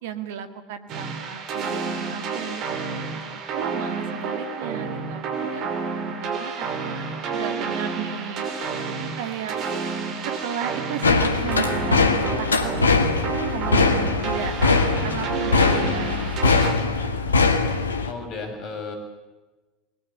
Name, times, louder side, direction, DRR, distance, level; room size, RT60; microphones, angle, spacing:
voice 1, 0.0-5.7 6.2-8.5 8.9-9.6 10.2-12.7 13.5-17.5, right 9 dB, 70° right, 9 dB, 2.0 m, -35 dB
sound 1, 0.9-16.7, right 5 dB, 50° right, 5.8 m, -30 dB
sound 2, 11.0-18.1, left 4 dB, 85° left, 1.9 m, -21 dB
voice 2, 18.0-19.0, left 4 dB, 50° left, 6 dB, 7.2 m, -33 dB
30.0 x 21.5 x 8.6 m, 1.2 s
figure-of-eight pair, 75°, 0 cm